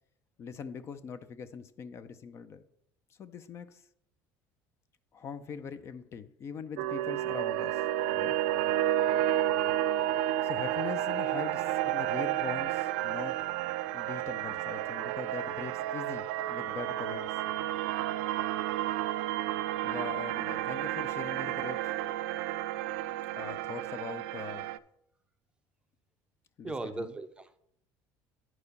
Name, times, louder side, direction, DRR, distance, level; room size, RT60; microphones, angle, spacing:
voice 1, 0.4-2.6 3.2-3.9 5.1-7.8 8.1-8.4 10.4-13.4 13.9-17.4 19.8-21.9 23.3-24.7 26.6-27.1, left 6 dB, 35° left, 12 dB, 0.6 m, -42 dB
sound 1, 6.8-24.8, right 13 dB, 85° right, 0.4 m, -31 dB
voice 2, 26.6-27.6, right 2 dB, 15° right, 9 dB, 0.5 m, -38 dB
9.8 x 4.8 x 5.3 m, 0.73 s
cardioid pair, 125°, 7 cm